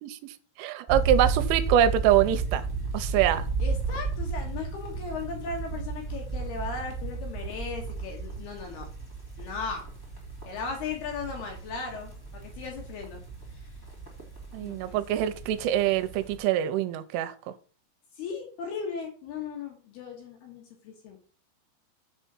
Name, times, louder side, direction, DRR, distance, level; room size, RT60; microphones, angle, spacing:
voice 1, 0.0-2.7 2.9-3.5 14.5-17.5, right 11 dB, 85° right, 3.1 m, -25 dB
sound 1, 0.9-16.4, right 4 dB, 20° left, 0.6 m, -33 dB
voice 2, 3.6-8.9 9.4-9.8 10.4-13.2 14.6-15.2 18.2-21.2, left 5 dB, 65° left, 2.9 m, -37 dB
7.1 x 5.6 x 6.1 m
omnidirectional pair, 5.9 m